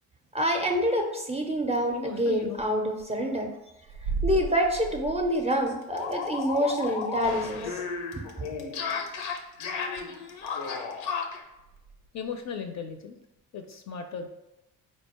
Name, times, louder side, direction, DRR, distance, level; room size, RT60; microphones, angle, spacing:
voice 1, 0.3-3.5 4.2-7.7, equal, 15° right, 2 dB, 0.5 m, -26 dB
sound 1, 1.8-1.9 2.2-2.3 2.5-2.7 3.0-3.2 3.8-5.7 6.3-6.4 7.2-7.3 8.3-8.4 8.6-8.8 9.1-9.4 9.9-10.1 10.4-10.6 11.5-12.5, right 3 dB, 80° right, 0.5 m, -36 dB
voice 2, 1.9-2.6 12.1-13.2 13.5-14.3, left 6 dB, 40° left, 6 dB, 0.4 m, -37 dB
sound 2, 4.4-4.6 4.9-5.0 5.3-11.4, left 5 dB, 85° left, 0.6 m, -34 dB
4.0 x 2.2 x 2.9 m, 0.93 s
hypercardioid pair, 60°, 43 cm